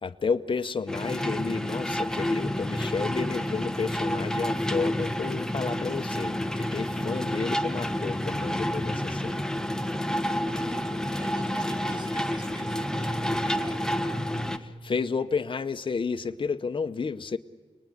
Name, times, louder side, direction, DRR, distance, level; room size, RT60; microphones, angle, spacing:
voice 1, 0.0-9.4 14.6-17.4, left 5 dB, 50° left, 0.8 m, -31 dB
sound 1, 0.9-14.6, left 1 dB, 5° left, 1.1 m, -29 dB
voice 2, 10.5-13.9, right 1 dB, 40° right, 2.4 m, -47 dB
28.0 x 20.0 x 9.9 m
wide cardioid pair, 115°, 11 cm